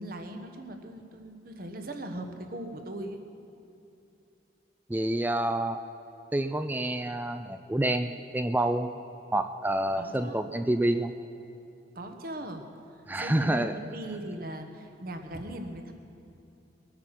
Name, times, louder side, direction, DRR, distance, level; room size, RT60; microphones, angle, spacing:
voice 1, 0.0-3.2 10.0-10.6 11.9-12.6 12.9-15.9, right 1 dB, 50° right, 6 dB, 1.2 m, -39 dB
voice 2, 4.9-5.8 6.3-8.9 9.3-11.1 13.1-13.7, right 1 dB, 10° right, 9 dB, 0.3 m, -28 dB
21.5 x 9.5 x 5.9 m, 2.7 s
head